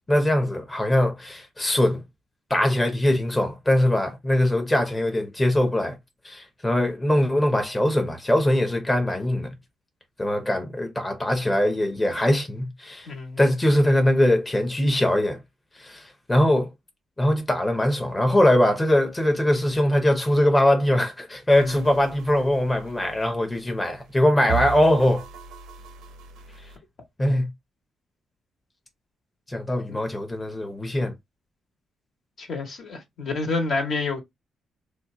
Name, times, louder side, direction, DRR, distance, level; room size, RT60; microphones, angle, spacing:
voice 1, 0.1-2.0 2.5-6.0 6.2-9.5 10.2-13.1 13.4-15.4 15.8-16.7 17.2-25.3 27.2-27.5 29.5-31.1, left 1 dB, 20° left, 0.8 m, -22 dB
voice 2, 13.1-13.4 21.5-21.8 29.9-30.0 32.4-34.2, left 3 dB, 60° left, 1.2 m, -28 dB
sound 1, 21.5-26.8, right 6 dB, 90° right, 0.7 m, -37 dB
2.8 x 2.2 x 3.7 m
cardioid pair, 70°, 0 cm